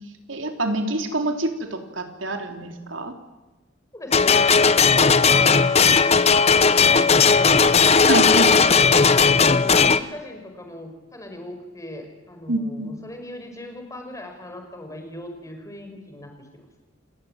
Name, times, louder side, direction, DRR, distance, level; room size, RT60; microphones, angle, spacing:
voice 1, 0.3-3.1 8.1-8.5 12.5-12.9, right 1 dB, 80° right, 5 dB, 3.6 m, -26 dB
voice 2, 3.9-7.7 8.1-9.2 9.5-16.7, left 1 dB, 15° left, 5 dB, 5.3 m, -38 dB
sound 1, 4.1-10.0, left 5 dB, 35° left, 0.8 m, -16 dB
28.5 x 18.0 x 9.1 m, 1.2 s
head